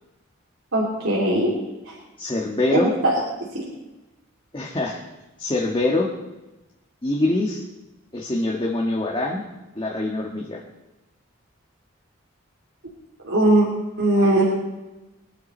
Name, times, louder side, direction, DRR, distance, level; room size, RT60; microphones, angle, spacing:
voice 1, 0.7-1.5 1.9-2.0 2.7-3.2 3.5-3.6 13.2-13.7 14.0-14.4, right 1 dB, 70° right, -5 dB, 3.1 m, -19 dB
voice 2, 2.2-2.9 4.5-5.0 5.4-6.1 7.0-7.6 8.1-9.4 9.7-10.6, left 2 dB, 25° left, -2 dB, 1.5 m, -24 dB
22.0 x 11.5 x 4.4 m, 1.0 s
head